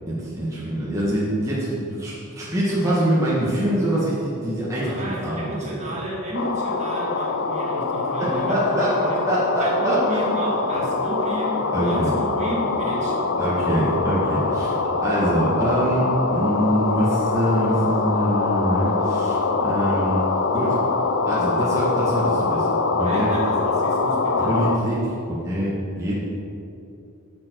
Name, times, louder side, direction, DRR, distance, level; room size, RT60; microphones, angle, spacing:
voice 1, 0.0-5.9 8.2-9.0 9.2-10.3 11.7-12.1 13.4-20.2 20.5-20.8 21.3-22.7 23.0-23.3 24.4-26.1, right 1 dB, 15° right, -8 dB, 1.6 m, -24 dB
voice 2, 4.8-8.8 9.1-9.2 9.6-13.3 13.5-13.7 23.0-24.6, equal, 35° right, -4 dB, 1.9 m, -31 dB
sound 1, 6.3-24.8, left 3 dB, 60° left, 0.6 m, -24 dB
11.0 x 6.9 x 4.7 m, 2.7 s
head